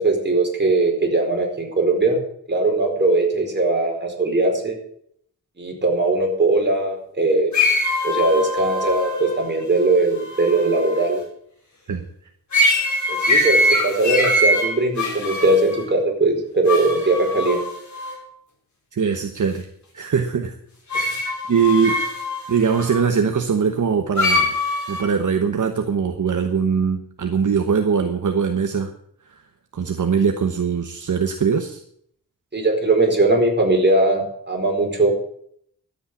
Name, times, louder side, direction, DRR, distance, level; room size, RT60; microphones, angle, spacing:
voice 1, 0.0-2.2 2.5-4.8 5.6-7.5 8.0-11.2 13.1-17.6 32.5-35.1, right 2 dB, 30° right, 0 dB, 4.7 m, -20 dB
sound 1, 7.5-11.1 12.5-15.8 16.7-18.1 20.9-23.0 24.2-25.0, left 1 dB, 55° left, 4.5 m, -22 dB
voice 2, 18.9-19.7 19.9-20.5 20.9-21.2 21.5-22.0 22.5-24.6 24.9-28.9 29.3-29.4 29.7-31.8, right 6 dB, 60° right, 6 dB, 1.2 m, -21 dB
12.5 x 8.8 x 8.5 m, 0.67 s
wide cardioid pair, 120°, 35 cm